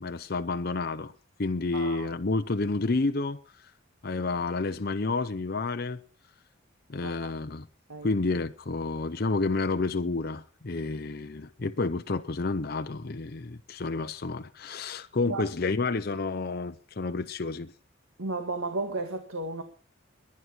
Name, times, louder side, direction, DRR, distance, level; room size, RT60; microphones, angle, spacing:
voice 1, 0.0-1.1 1.4-3.4 4.0-6.0 6.9-7.7 8.0-17.7, left 3 dB, 50° left, 0.7 m, -30 dB
voice 2, 1.7-2.1 7.0-7.3 7.9-8.1 15.3-15.5 18.2-19.6, right 2 dB, 80° right, 1.7 m, -33 dB
22.0 x 9.7 x 4.4 m
head